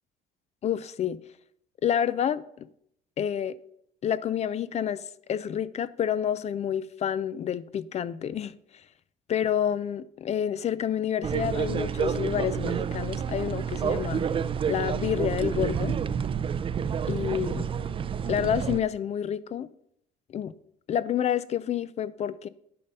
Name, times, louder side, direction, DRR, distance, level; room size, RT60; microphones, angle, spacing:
voice 1, 0.6-1.2 1.8-2.7 3.2-3.6 4.0-8.5 9.3-14.3 14.7-16.0 17.1-17.7 18.3-19.7 20.3-20.5 20.9-22.5, left 9 dB, 40° left, 0.4 m, -29 dB
sound 1, 11.2-18.8, right 7 dB, 30° right, 0.4 m, -29 dB
10.0 x 4.1 x 5.4 m
cardioid pair, 110°, 17 cm